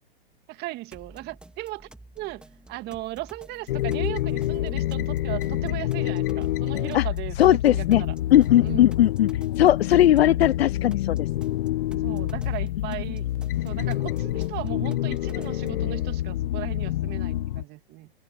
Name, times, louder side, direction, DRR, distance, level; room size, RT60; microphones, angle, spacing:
voice 1, 0.5-1.9 2.2-8.1 8.6-8.9 12.0-13.3 13.6-18.1, right 18 dB, 30° right, 2.4 m, -37 dB
sound 1, 0.9-15.9, right 1 dB, 5° right, 1.8 m, -50 dB
sound 2, 3.7-17.6, left 14 dB, 60° left, 1.1 m, -27 dB
voice 2, 7.4-8.0 8.3-9.3 9.6-11.3, left 12 dB, 75° left, 0.6 m, -18 dB
open air
hypercardioid pair, 130°, 31 cm